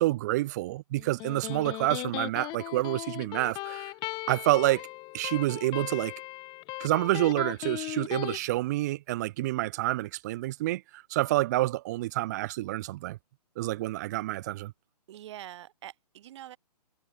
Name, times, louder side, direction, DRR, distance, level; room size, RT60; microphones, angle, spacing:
voice 1, 0.0-3.9 4.3-4.8 5.1-6.1 6.8-13.2 13.6-14.7, right 17 dB, 25° right, 0.5 m, -28 dB
Electric guitar, 1.0-8.4, left 22 dB, 20° left, 1.8 m, -37 dB
voice 2, 15.1-16.6, right 12 dB, 45° right, 2.4 m, -44 dB
hypercardioid pair, 150°, 21 cm